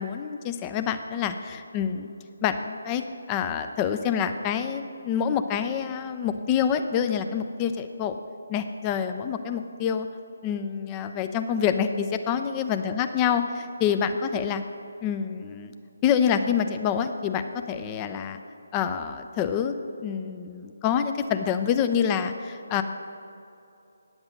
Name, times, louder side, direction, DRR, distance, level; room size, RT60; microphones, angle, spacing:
voice 1, 0.0-2.1 2.4-3.0 3.3-8.1 8.5-10.1 10.4-14.6 15.0-15.7 16.0-18.4 18.7-19.7 20.0-22.8, left 8 dB, 15° left, 8 dB, 0.4 m, -27 dB
9.5 x 7.9 x 6.3 m, 2.7 s
figure-of-eight pair, 145°, 0 cm